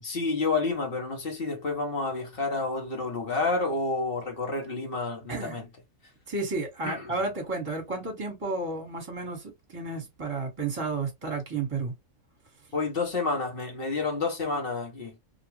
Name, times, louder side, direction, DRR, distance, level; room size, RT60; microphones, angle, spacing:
voice 1, 0.0-5.6 6.8-7.1 12.7-15.1, left 3 dB, 45° left, 1.0 m, -29 dB
voice 2, 6.3-11.9, right 3 dB, 20° right, 1.3 m, -32 dB
2.8 x 2.4 x 3.0 m
omnidirectional pair, 1.5 m